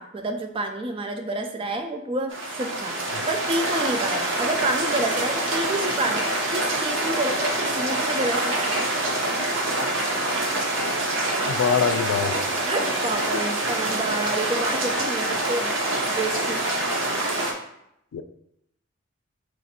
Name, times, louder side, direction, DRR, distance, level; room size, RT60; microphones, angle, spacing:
voice 1, 0.0-8.8 12.6-15.8 16.1-16.6, right 2 dB, 25° right, 5 dB, 0.4 m, -29 dB
sound 1, 2.3-17.5, right 1 dB, 60° right, 0.7 m, -26 dB
voice 2, 11.5-12.4 18.1-18.2, left 7 dB, 75° left, 11 dB, 0.3 m, -23 dB
4.0 x 2.5 x 4.2 m, 0.79 s
head